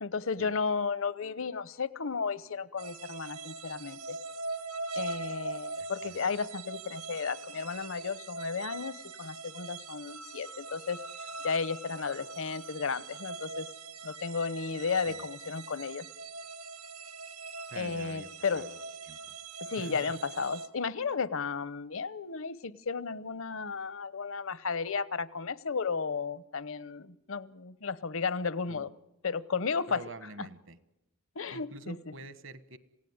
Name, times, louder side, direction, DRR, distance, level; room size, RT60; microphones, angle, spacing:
voice 1, 0.0-4.2 4.9-13.7 14.0-16.0 17.8-18.6 19.7-28.9 29.2-30.0 31.4-32.0, left 5 dB, 65° left, 18 dB, 0.9 m, -34 dB
sound 1, 2.8-20.7, right 3 dB, 85° right, 2.0 m, -42 dB
voice 2, 5.8-6.3 15.0-15.2 17.7-18.8 19.0-19.4 19.8-20.0 28.7-28.9 29.9-30.8 31.5-32.8, right 3 dB, 65° right, 14 dB, 1.4 m, -47 dB
27.5 x 17.0 x 9.5 m, 0.93 s
head